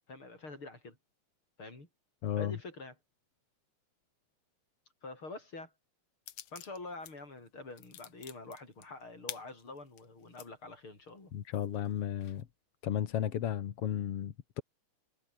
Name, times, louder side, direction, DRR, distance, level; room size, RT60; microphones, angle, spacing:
voice 1, 0.1-1.0 1.6-1.9 2.4-3.0 5.0-5.7 6.5-11.3, left 3 dB, 35° left, 7.5 m, -46 dB
voice 2, 2.2-2.5 11.3-12.5 12.8-14.6, left 10 dB, 55° left, 1.8 m, -34 dB
sound 1, 6.3-7.1 7.5-10.5 11.0-11.1 11.5-12.4, left 12 dB, 75° left, 1.4 m, -48 dB
omnidirectional pair, 4.3 m